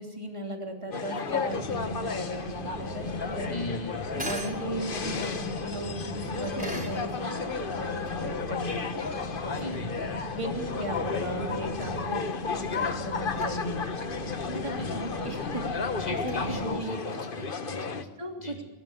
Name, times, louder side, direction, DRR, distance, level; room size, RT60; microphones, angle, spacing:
voice 1, 0.0-3.5 4.2-9.8 10.3-12.2 12.5-13.8 14.5-16.9 17.8-17.9 18.2-18.5, right 1 dB, 30° right, 1 dB, 3.3 m, -37 dB
sound 1, 0.9-18.0, left 4 dB, 55° left, 1.3 m, -33 dB
sound 2, 1.5-16.7, left 1 dB, 60° right, 6.2 m, -39 dB
sound 3, 2.0-17.4, right 1 dB, 10° right, 5.9 m, -46 dB
voice 2, 3.5-4.3 9.6-9.9 14.8-15.1 16.1-18.1 18.4-18.6, left 1 dB, 40° left, 0 dB, 3.4 m, -38 dB
21.0 x 18.0 x 8.3 m, 1.1 s
omnidirectional pair, 1.1 m